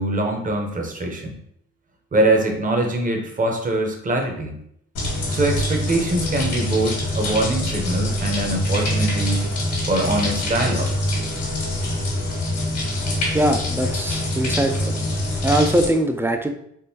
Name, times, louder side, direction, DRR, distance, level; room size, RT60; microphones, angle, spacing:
voice 1, 0.0-1.3 2.1-4.6 5.3-9.4 9.9-10.9, right 2 dB, 25° right, 3 dB, 0.7 m, -23 dB
sound 1, 4.9-15.9, left 1 dB, 75° left, 1.4 m, -24 dB
voice 2, 13.3-15.0 15.4-16.5, right 1 dB, 10° right, 5 dB, 0.3 m, -21 dB
3.7 x 2.5 x 2.7 m, 0.71 s
cardioid pair, 90°, 30 cm